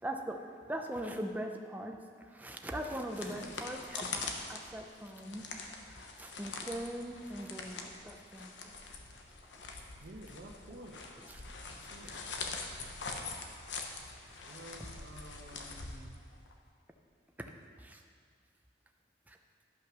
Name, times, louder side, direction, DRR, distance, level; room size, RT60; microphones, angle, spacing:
voice 1, 0.0-5.5 5.9-8.7 11.2-11.5 12.0-12.2 17.8-18.0 19.3-19.4, right 1 dB, 10° right, 3 dB, 0.6 m, -41 dB
sound 1, 2.8-16.5, left 4 dB, 85° left, 1.0 m, -44 dB
voice 2, 10.0-11.1 11.7-12.3 14.4-16.2, right 1 dB, 70° right, 0 dB, 1.0 m, -51 dB
12.0 x 5.8 x 6.1 m, 2.1 s
head